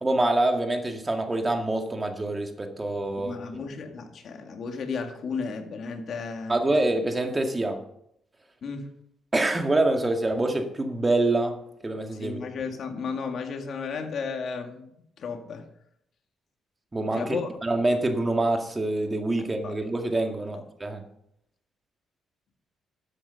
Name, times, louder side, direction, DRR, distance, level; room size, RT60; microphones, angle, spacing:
voice 1, 0.0-3.4 6.5-7.8 9.3-11.6 11.8-12.4 16.9-21.0, right 2 dB, 20° right, 4 dB, 2.0 m, -26 dB
voice 2, 3.2-6.6 8.6-8.9 12.1-14.9 15.2-15.6 17.2-17.6 19.4-19.8 20.5-20.6, left 5 dB, 60° left, 4 dB, 2.2 m, -34 dB
13.0 x 8.4 x 5.4 m, 0.75 s
cardioid pair, 90°, 0 cm